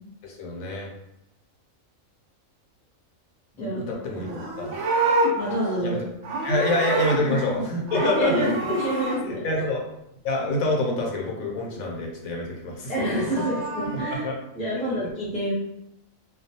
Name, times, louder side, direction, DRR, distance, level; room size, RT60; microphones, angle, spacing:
voice 1, 0.2-0.9 3.6-4.3 4.6-4.8 5.8-6.0 6.4-8.5 9.2-9.9 10.2-12.9 14.2-14.3 14.7-15.1, left 2 dB, 80° left, -1 dB, 1.1 m, -27 dB
voice 2, 3.5-3.8 4.1-4.4 5.4-6.0 7.3-7.4 7.9-9.5 12.9-14.3 14.5-15.5, right 1 dB, 5° left, -7 dB, 0.5 m, -27 dB
Livestock farm animals working animals, 4.2-7.6 7.9-9.2 13.0-14.2, right 2 dB, 60° right, 0.8 m, -28 dB
2.4 x 2.2 x 2.7 m, 0.82 s
omnidirectional pair, 1.4 m